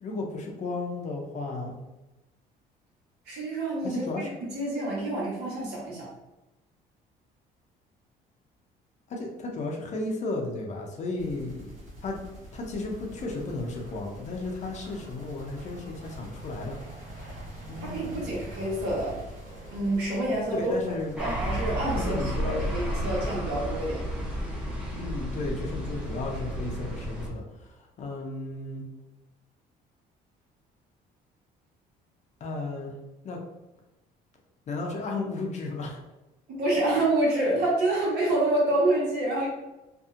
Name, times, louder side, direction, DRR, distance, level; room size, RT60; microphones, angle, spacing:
voice 1, 0.0-1.8 3.8-4.3 9.1-11.8 12.0-12.2 12.5-16.8 17.7-18.2 20.6-21.2 21.9-22.6 25.0-28.8 32.4-32.9 33.2-33.4 34.7-36.0, left 2 dB, 45° left, 1 dB, 0.6 m, -34 dB
voice 2, 3.3-6.1 17.8-19.2 19.7-20.7 21.2-22.2 22.4-24.0 36.5-39.5, right 2 dB, 75° right, -4 dB, 1.2 m, -27 dB
sound 1, 11.2-27.0, equal, 50° right, 1.2 m, -45 dB
sound 2, 21.2-27.3, equal, 5° right, 0.7 m, -32 dB
2.7 x 2.6 x 2.4 m, 1.0 s
cardioid pair, 110°, 17 cm